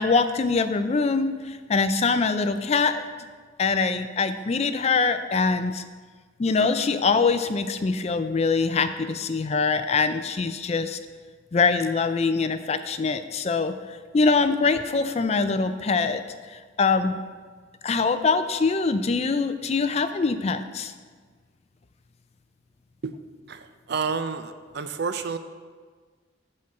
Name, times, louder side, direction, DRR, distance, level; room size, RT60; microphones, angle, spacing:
voice 1, 0.0-3.0 3.6-5.8 6.4-11.0 11.5-13.7 14.1-16.2 16.5-17.2 17.8-20.9, left 4 dB, 35° left, 10 dB, 0.4 m, -23 dB
voice 2, 23.5-25.4, right 5 dB, 55° right, 10 dB, 0.5 m, -30 dB
9.4 x 4.4 x 6.3 m, 1.5 s
head